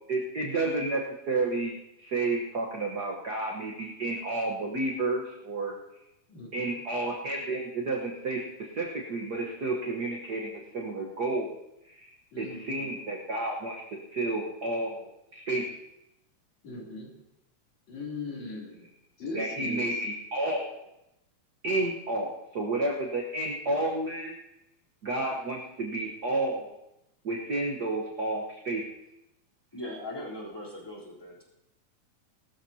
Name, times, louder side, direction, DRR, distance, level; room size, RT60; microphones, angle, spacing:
voice 1, 0.0-5.8 6.5-11.6 11.8-12.1 12.4-15.7 19.3-20.9 21.6-24.4 25.0-26.8 27.2-28.9, right 2 dB, 60° right, 0 dB, 1.0 m, -31 dB
voice 2, 6.3-6.7 12.3-13.1 16.6-17.1 17.9-18.9 19.2-19.9, left 3 dB, 60° left, -3 dB, 4.4 m, -39 dB
voice 3, 29.7-31.4, left 1 dB, 5° left, -5 dB, 3.4 m, -39 dB
20.0 x 13.0 x 2.8 m, 0.87 s
omnidirectional pair, 3.6 m